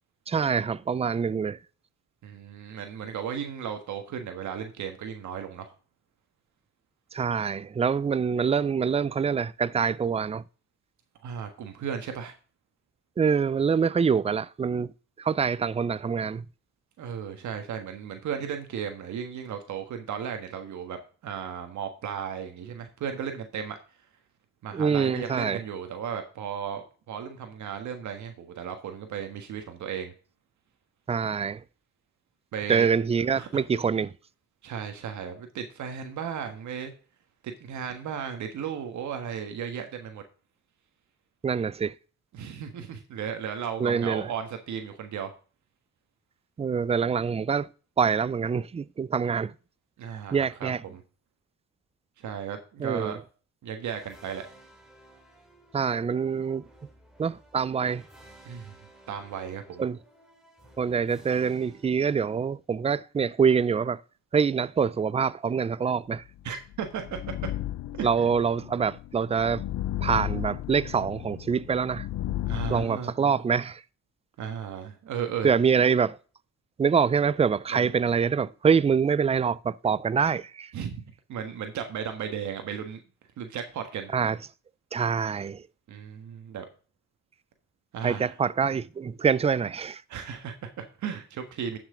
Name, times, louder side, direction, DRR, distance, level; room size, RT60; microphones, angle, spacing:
voice 1, 0.3-1.6 7.1-10.4 13.2-14.9 15.2-16.4 24.7-25.6 31.1-31.6 32.7-34.1 41.4-41.9 43.8-44.3 46.6-47.7 48.0-49.5 50.3-50.8 52.8-53.2 55.7-56.6 57.2-58.0 59.8-60.0 60.8-64.0 64.3-66.2 68.0-69.6 70.0-72.1 72.7-73.8 75.4-76.2 76.8-80.7 84.1-84.4 84.9-85.6 88.0-90.0, right 6 dB, 20° right, 0.4 m, -25 dB
voice 2, 2.2-5.7 11.2-12.3 17.0-23.8 24.6-30.1 32.5-32.9 33.3-33.6 34.6-36.9 37.4-40.2 42.3-45.3 50.0-51.0 52.2-53.2 53.6-54.4 58.4-58.7 59.1-59.9 66.4-67.5 68.0-68.3 72.5-73.1 74.4-75.5 77.7-77.9 80.7-81.0 81.3-83.0 83.4-84.1 85.9-86.6 87.9-88.4 90.1-91.8, right 8 dB, 70° right, 1.5 m, -35 dB
sound 1, 53.8-62.7, right 1 dB, ahead, 2.7 m, -55 dB
sound 2, 66.4-72.8, left 13 dB, 65° left, 0.6 m, -34 dB
11.5 x 6.1 x 3.8 m
cardioid pair, 90°, 30 cm